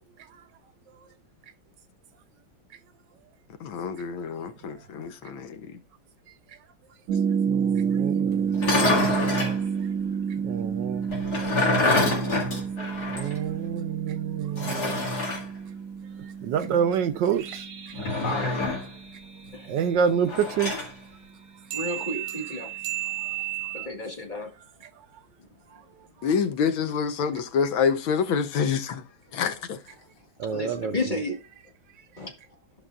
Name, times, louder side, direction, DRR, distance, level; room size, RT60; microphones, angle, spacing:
voice 1, 3.6-5.8 26.2-29.0 29.3-29.8, left 6 dB, 80° left, 1.6 m, -27 dB
sound 1, 7.1-20.1 21.7-23.9, right 7 dB, 90° right, 1.6 m, -30 dB
voice 2, 7.5-9.1 10.4-11.1 13.1-15.0 16.4-17.6 19.7-20.7 30.4-30.9, right 7 dB, 70° right, 1.2 m, -27 dB
sound 2, 8.5-9.6 11.1-13.4 13.7-13.8 14.6-15.4 17.9-18.9 20.3-20.9, left 2 dB, 50° left, 2.6 m, -26 dB
voice 3, 18.2-18.6 19.5-19.8 21.7-22.7 23.7-24.5 29.3-29.4 30.5-31.4 32.2-32.3, left 1 dB, 25° left, 1.7 m, -32 dB
13.5 x 5.6 x 2.4 m
omnidirectional pair, 2.2 m